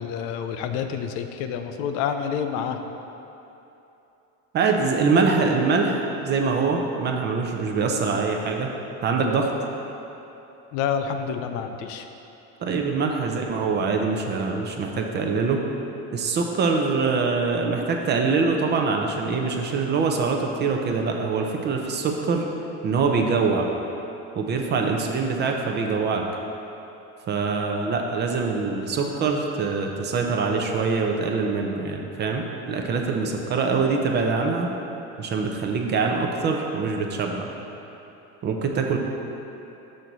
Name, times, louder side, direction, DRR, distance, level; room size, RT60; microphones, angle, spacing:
voice 1, 0.0-2.8 10.7-12.1, left 7 dB, 55° left, 7 dB, 0.5 m, -28 dB
voice 2, 4.5-8.7 9.0-9.5 12.6-15.6 16.1-22.5 22.8-23.7 24.4-26.2 27.3-34.7 35.2-37.5 38.4-39.0, right 4 dB, 30° right, 2 dB, 0.5 m, -24 dB
6.3 x 6.0 x 4.0 m, 3.0 s
cardioid pair, 145°, 35 cm